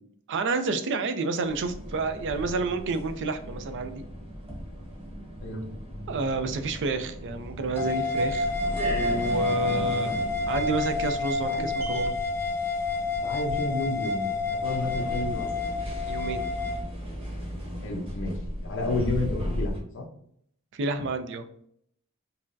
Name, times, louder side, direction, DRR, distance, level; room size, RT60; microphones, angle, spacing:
voice 1, 0.3-4.0 6.1-8.5 8.8-10.2 10.5-12.2 16.1-16.5 20.7-21.4, right 3 dB, 55° right, 9 dB, 0.4 m, -29 dB
sound 1, 1.4-19.8, equal, 25° right, 0.9 m, -36 dB
sound 2, 7.8-16.8, left 3 dB, 10° left, 0.7 m, -29 dB
voice 2, 13.2-15.6 17.8-20.1, left 2 dB, 60° left, -1 dB, 0.7 m, -31 dB
5.5 x 2.1 x 2.6 m, 0.68 s
head